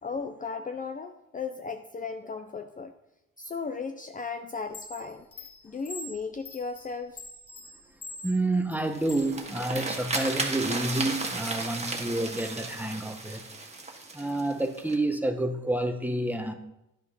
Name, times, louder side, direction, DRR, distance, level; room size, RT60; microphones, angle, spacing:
voice 1, 0.0-2.9 3.4-5.3 5.6-7.2, left 5 dB, 25° left, 0.6 m, -36 dB
Chime, 4.5-10.4 10.8-12.5, left 2 dB, 50° left, 2.0 m, -45 dB
voice 2, 8.2-13.4 14.1-16.5, right 2 dB, 5° right, 1.2 m, -29 dB
sound 1, 8.8-14.9, right 3 dB, 20° right, 1.8 m, -34 dB
10.5 x 6.2 x 5.5 m
cardioid pair, 90°, 30 cm